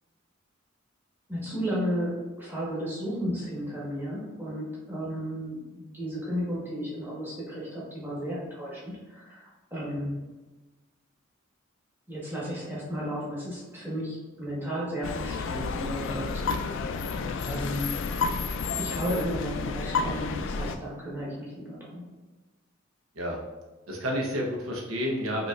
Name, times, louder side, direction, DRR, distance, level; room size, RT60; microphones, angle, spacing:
voice 1, 1.3-10.3 12.1-18.0 18.8-22.1, equal, 10° right, -7 dB, 1.2 m, -34 dB
sound 1, 15.0-20.8, left 4 dB, 65° left, 0.3 m, -31 dB
voice 2, 23.1-23.5 23.9-25.5, equal, 80° right, -1 dB, 0.9 m, -30 dB
5.0 x 3.1 x 2.4 m, 1.2 s
head